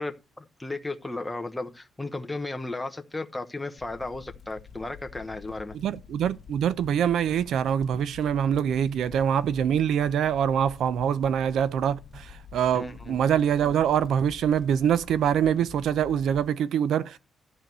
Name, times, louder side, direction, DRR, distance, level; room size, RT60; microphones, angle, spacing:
voice 1, 0.0-5.7 12.7-13.2, left 2 dB, 10° left, 0.9 m, -35 dB
sound 1, 3.8-16.5, left 7 dB, 45° left, 1.6 m, -48 dB
voice 2, 5.7-17.2, right 9 dB, 65° right, 0.6 m, -24 dB
13.0 x 4.5 x 6.7 m
cardioid pair, 175°, 0 cm